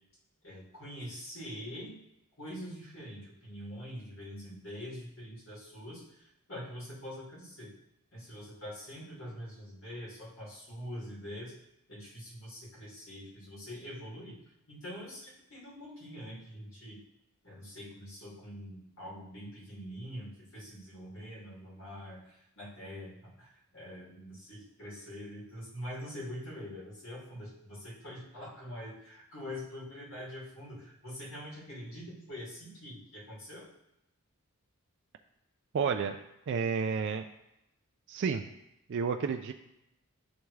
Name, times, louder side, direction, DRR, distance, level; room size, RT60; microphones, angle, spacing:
voice 1, 0.4-2.0 2.4-7.7 8.1-11.6 11.9-14.3 14.7-17.0 17.4-33.7, equal, 60° left, -6 dB, 2.5 m, -44 dB
voice 2, 35.7-36.2 36.5-37.3 38.1-38.5 38.9-39.5, right 5 dB, 55° right, 5 dB, 0.3 m, -30 dB
10.5 x 3.5 x 3.2 m, 0.86 s
head